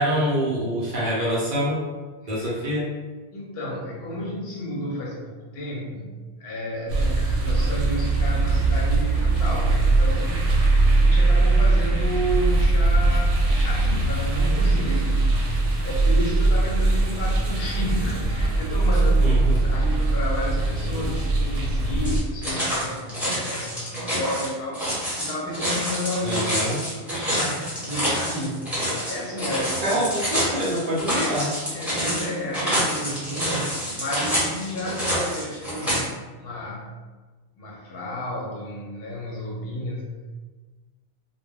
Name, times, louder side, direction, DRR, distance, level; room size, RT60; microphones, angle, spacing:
voice 1, 0.0-1.8 2.3-2.9 19.2-19.6 26.2-26.8 29.8-31.5, equal, 50° right, -6 dB, 0.8 m, -25 dB
voice 2, 3.3-6.1 6.4-10.5 11.0-15.3 15.8-19.4 19.7-26.5 27.1-28.8 29.1-30.0 31.7-36.1 36.4-36.9 37.5-40.2, equal, 65° left, -4 dB, 0.8 m, -32 dB
sound 1, 6.9-22.2, right 2 dB, 85° right, 0.9 m, -21 dB
sound 2, 22.0-36.0, equal, ahead, 0.9 m, -27 dB
2.2 x 2.1 x 3.4 m, 1.3 s
omnidirectional pair, 1.2 m